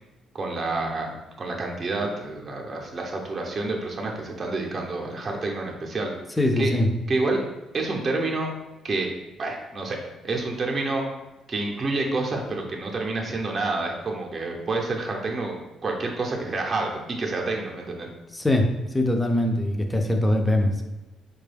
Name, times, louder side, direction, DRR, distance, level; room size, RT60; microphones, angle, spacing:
voice 1, 0.3-6.1 6.6-6.7 7.1-7.4 7.7-8.5 8.8-9.1 9.4-10.0 10.2-11.0 11.5-18.1, right 3 dB, 35° right, 0 dB, 0.6 m, -28 dB
voice 2, 6.4-6.9 18.3-20.8, left 1 dB, 10° left, 3 dB, 0.4 m, -22 dB
4.4 x 2.3 x 3.3 m, 1.0 s
cardioid pair, 125°, 0 cm